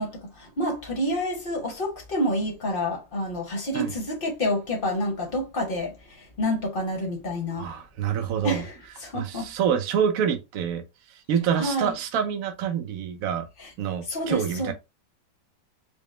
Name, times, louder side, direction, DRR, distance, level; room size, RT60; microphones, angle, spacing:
voice 1, 0.0-7.7 8.4-9.5 11.6-11.9 13.6-13.7 14.1-14.7, equal, 35° left, 1.0 m, -28 dB
voice 2, 7.6-8.6 9.1-10.8 11.3-13.5 13.8-14.7, right 8 dB, 60° right, 1.0 m, -26 dB
4.9 x 2.1 x 3.1 m
omnidirectional pair, 2.0 m